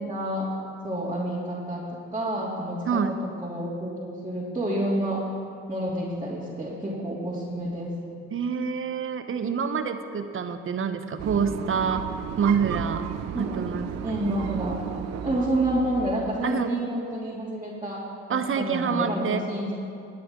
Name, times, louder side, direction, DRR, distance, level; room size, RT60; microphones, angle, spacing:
voice 1, 0.1-0.5 0.8-1.8 2.1-3.0 3.4-5.2 5.7-7.9 13.3-14.8 15.2-18.0 18.3-19.7, right 1 dB, 15° right, -8 dB, 3.0 m, -29 dB
voice 2, 8.3-12.1 12.4-13.1 13.4-13.9 16.4-16.7 18.3-19.4, right 6 dB, 45° right, 9 dB, 1.0 m, -27 dB
sound 1, 11.2-16.8, right 10 dB, 60° right, 0.6 m, -34 dB
19.5 x 8.6 x 3.8 m, 2.4 s
supercardioid pair, 60°, 29 cm